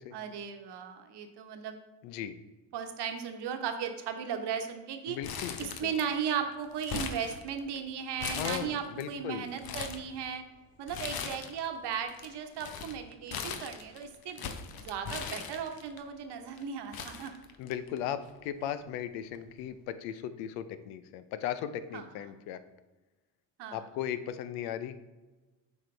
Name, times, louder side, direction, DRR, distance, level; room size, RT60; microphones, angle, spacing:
voice 1, 0.1-1.8 2.7-5.2 5.6-10.4 10.8-14.4 14.8-17.3 21.9-22.0 23.6-23.8, right 7 dB, 65° right, 6 dB, 1.1 m, -36 dB
voice 2, 2.0-2.4 5.1-5.9 8.3-9.5 17.6-22.6 23.7-24.9, left 10 dB, 85° left, 12 dB, 0.6 m, -37 dB
Crumpling crinkling, 5.2-6.2 6.5-7.8 8.2-9.0 9.4-10.1 10.9-11.7 11.9-16.0 16.6-16.7 16.9-18.0 18.3-18.4 19.3-19.6, left 6 dB, 55° left, 0.8 m, -39 dB
7.9 x 5.0 x 3.2 m, 1.2 s
supercardioid pair, 65°, 44 cm